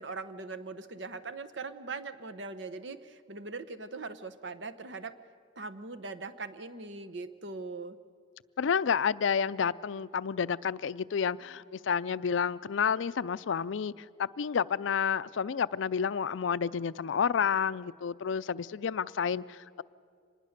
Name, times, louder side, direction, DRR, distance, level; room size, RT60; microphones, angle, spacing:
voice 1, 0.0-5.2 5.6-8.0, right 3 dB, 70° right, 0.9 m, -41 dB
voice 2, 8.6-13.9 14.2-19.8, left 6 dB, 85° left, 0.4 m, -30 dB
25.0 x 20.0 x 6.6 m
head